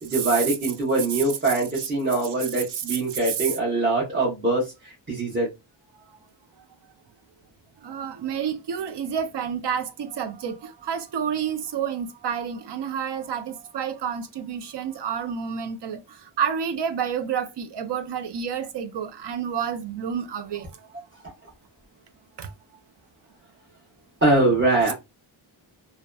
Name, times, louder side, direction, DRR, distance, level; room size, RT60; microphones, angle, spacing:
voice 1, 0.0-5.5 24.2-24.9, right 2 dB, 20° right, 0.9 m, -23 dB
voice 2, 7.8-16.0 16.4-20.7 22.4-22.5, right 7 dB, 55° right, 0.5 m, -29 dB
2.7 x 2.1 x 2.2 m
wide cardioid pair, 140°, 50 cm